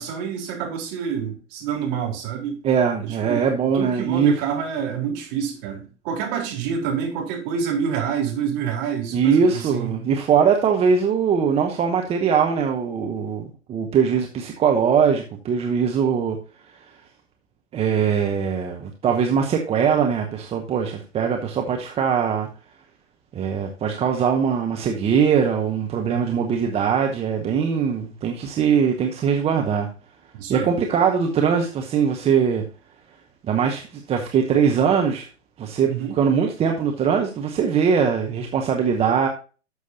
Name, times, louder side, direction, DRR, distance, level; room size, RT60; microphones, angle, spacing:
voice 1, 0.0-2.6 3.0-9.9 26.1-26.4 30.3-30.7 35.9-36.2, right 7 dB, 40° right, 4.0 m, -27 dB
voice 2, 2.6-4.3 9.1-16.4 16.7-16.8 17.7-22.5 23.3-29.9 30.5-32.6 33.4-35.3 35.6-39.3, right 7 dB, 15° right, 0.9 m, -21 dB
12.5 x 6.4 x 2.8 m
figure-of-eight pair, 110°, 36 cm